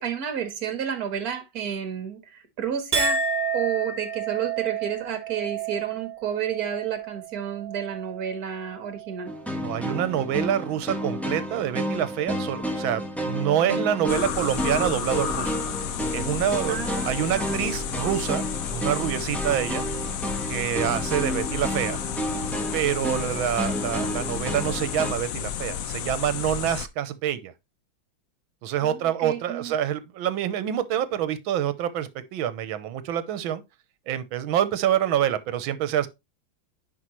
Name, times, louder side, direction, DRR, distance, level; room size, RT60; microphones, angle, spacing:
voice 1, 0.0-3.3 3.5-9.3 16.7-17.6 28.8-29.7, right 8 dB, 50° right, 1.9 m, -31 dB
Chink clink, 2.9-9.5 9.9-10.4, right 5 dB, 30° right, 1.7 m, -31 dB
sound 1, 9.3-25.1, equal, ahead, 0.9 m, -31 dB
voice 2, 9.6-15.6 16.1-19.8 20.5-22.0 22.7-27.5 28.6-33.6 34.1-36.1, right 10 dB, 80° right, 1.6 m, -26 dB
sound 2, 14.1-26.9, left 9 dB, 70° left, 0.8 m, -32 dB
9.9 x 4.8 x 3.1 m
omnidirectional pair, 2.2 m